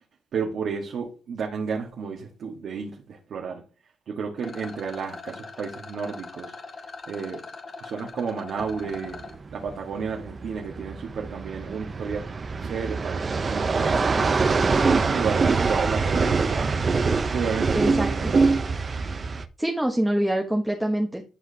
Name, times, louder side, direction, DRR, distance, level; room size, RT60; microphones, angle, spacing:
voice 1, 0.3-3.6 4.1-6.5 7.1-7.4 7.8-9.2 9.5-12.2 12.6-14.4 14.8-16.7 17.3-18.7, right 5 dB, 65° right, 1.5 m, -32 dB
Rattle, 4.4-9.3, left 4 dB, 40° left, 2.0 m, -41 dB
sound 1, 8.6-19.4, right 4 dB, 35° right, 0.7 m, -24 dB
voice 2, 17.7-18.3 19.6-21.2, right 1 dB, 5° right, 1.1 m, -25 dB
12.0 x 4.9 x 2.8 m
cardioid pair, 90°, 0 cm